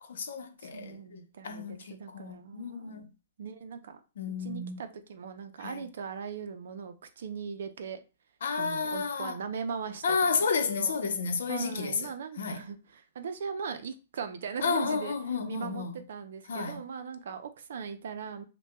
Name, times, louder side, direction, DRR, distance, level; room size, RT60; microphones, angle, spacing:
voice 1, 0.0-3.1 4.2-4.8 5.6-5.7 8.4-9.4 10.0-12.1 12.4-12.6 14.6-16.0 16.5-16.8, left 5 dB, 70° left, 0.8 m, -31 dB
voice 2, 0.6-3.1 3.4-4.0 4.3-8.0 8.6-10.5 10.7-11.0 11.5-15.2 15.4-18.4, right 6 dB, 65° right, 0.6 m, -39 dB
5.7 x 2.3 x 2.2 m
hypercardioid pair, 165°, 0 cm